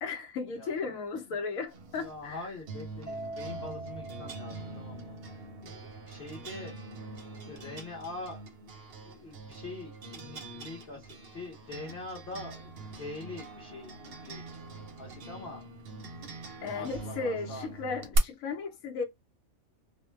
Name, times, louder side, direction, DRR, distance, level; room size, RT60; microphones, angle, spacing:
voice 1, 0.0-2.4 16.6-19.0, left 4 dB, 80° left, 1.1 m, -35 dB
voice 2, 0.5-1.3 1.9-6.8 7.5-8.4 9.1-15.7 16.7-17.7, left 2 dB, 50° left, 1.0 m, -44 dB
sound 1, 1.7-18.2, right 3 dB, 55° right, 0.7 m, -43 dB
Mallet percussion, 3.1-5.5, right 2 dB, 10° right, 0.5 m, -43 dB
2.6 x 2.1 x 3.1 m
omnidirectional pair, 1.5 m